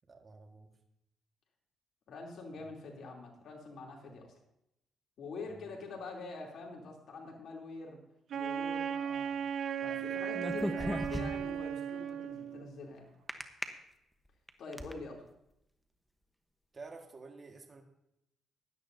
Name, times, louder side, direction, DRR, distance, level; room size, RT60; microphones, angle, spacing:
voice 1, 0.1-0.7 2.6-2.7 5.5-5.8 16.7-17.8, right 3 dB, 35° right, 2 dB, 1.7 m, -51 dB
voice 2, 2.1-4.3 5.2-8.0 8.3-9.4 9.8-13.1 14.6-15.2, left 3 dB, 65° left, -1 dB, 3.1 m, -45 dB
Wind instrument woodwind instrument, 8.3-12.7, right 8 dB, 65° right, 0.8 m, -36 dB
sound 1, 10.3-11.6 13.3-13.6 14.3-14.9, equal, ahead, 1.0 m, -36 dB
16.5 x 11.0 x 2.7 m, 0.82 s
cardioid pair, 90°, 0 cm